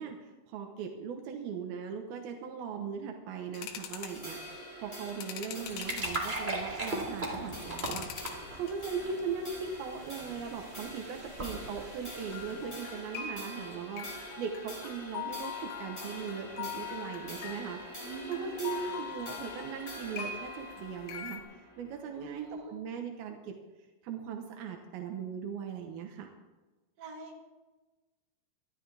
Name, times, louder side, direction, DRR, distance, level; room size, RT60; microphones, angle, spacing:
voice 1, 0.0-8.1 8.5-14.1 14.4-21.4 21.8-23.5 24.0-26.3, right 6 dB, 75° right, 3 dB, 2.3 m, -39 dB
sound 1, 3.5-4.2 5.0-6.4 7.0-8.4 8.7-9.2 9.7-9.8 12.3-21.4, left 8 dB, 85° left, 3.9 m, -43 dB
sound 2, 3.9-22.5, equal, 10° left, 6.7 m, -46 dB
sound 3, 5.4-13.0, right 1 dB, 15° right, 2.3 m, -39 dB
voice 2, 18.0-19.0 22.1-22.8 27.0-27.4, right 3 dB, 55° right, 1 dB, 3.4 m, -45 dB
26.0 x 12.0 x 3.4 m, 1.2 s
omnidirectional pair, 5.9 m